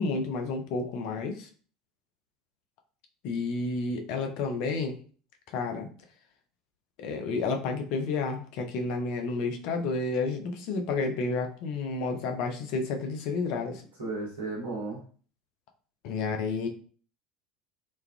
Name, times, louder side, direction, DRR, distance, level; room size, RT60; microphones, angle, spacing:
voice 1, 0.0-1.5 3.2-5.0 5.5-5.9 7.0-13.8 16.0-16.7, left 4 dB, 55° left, 4 dB, 0.4 m, -30 dB
voice 2, 14.0-15.0, right 3 dB, 75° right, -3 dB, 1.0 m, -34 dB
3.1 x 2.3 x 2.2 m, 0.42 s
figure-of-eight pair, 70°, 0 cm